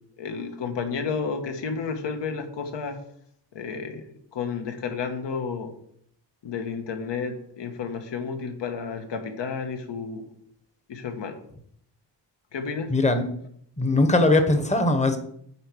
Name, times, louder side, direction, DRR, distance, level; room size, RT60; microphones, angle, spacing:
voice 1, 0.2-3.0 3.5-5.7 6.4-10.2 10.9-11.4 12.5-12.9, left 5 dB, 75° left, 5 dB, 1.4 m, -31 dB
voice 2, 12.9-13.3 13.8-15.2, left 2 dB, 15° left, 7 dB, 1.0 m, -20 dB
9.0 x 4.6 x 6.2 m, 0.66 s
wide cardioid pair, 165°, 43 cm